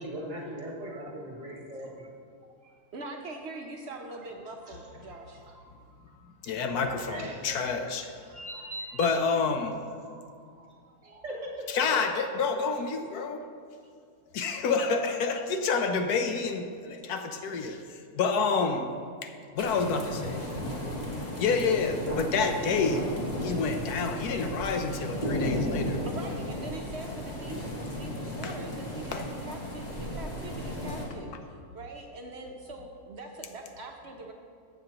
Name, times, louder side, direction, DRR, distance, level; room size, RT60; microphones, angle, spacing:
voice 1, 0.0-2.1 2.6-2.7 4.6-4.8 5.1-5.5 6.4-7.6 8.0-9.2 10.0-10.7 11.0-11.9, right 1 dB, 25° right, -3 dB, 1.7 m, -41 dB
voice 2, 2.9-5.4 8.2-8.4 11.0-11.2 26.0-34.3, right 2 dB, 55° right, 2 dB, 0.9 m, -43 dB
voice 3, 6.4-8.1 9.0-9.8 11.7-13.4 14.3-18.9 19.2-20.4 21.4-23.1 23.4-26.0 28.4-28.6 29.1-29.2, left 4 dB, 80° left, 6 dB, 1.2 m, -28 dB
sound 1, 19.6-31.0, left 1 dB, 25° left, 1.7 m, -34 dB
14.0 x 7.7 x 2.9 m, 2.2 s
omnidirectional pair, 1.6 m